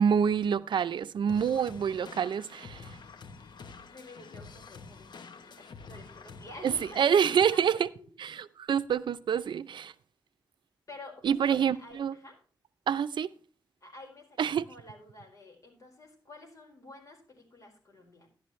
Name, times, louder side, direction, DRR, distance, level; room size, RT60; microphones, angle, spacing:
voice 1, 0.0-3.0 6.6-7.8 8.2-9.9 11.2-12.1 12.9-13.3 14.4-14.7, right 7 dB, 80° right, 0.6 m, -27 dB
sound 1, 1.3-7.4, left 4 dB, 70° left, 1.0 m, -48 dB
voice 2, 3.8-8.1 10.9-12.4 13.8-18.3, left 2 dB, 45° left, 4.9 m, -50 dB
13.0 x 11.5 x 3.2 m
wide cardioid pair, 125°, 8 cm